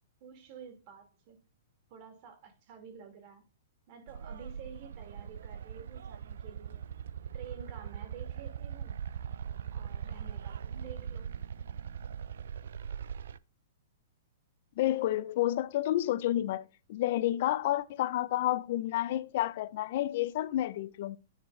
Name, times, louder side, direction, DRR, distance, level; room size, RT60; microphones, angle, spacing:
voice 1, 0.2-1.4 1.9-3.5 3.9-6.9 7.3-9.0 9.7-11.3, right 7 dB, 40° right, 2.6 m, -50 dB
sound 1, 4.1-13.4, right 8 dB, 75° right, 0.5 m, -41 dB
voice 2, 14.8-21.2, left 14 dB, 45° left, 0.6 m, -30 dB
9.5 x 4.8 x 3.8 m
hypercardioid pair, 165°, 0 cm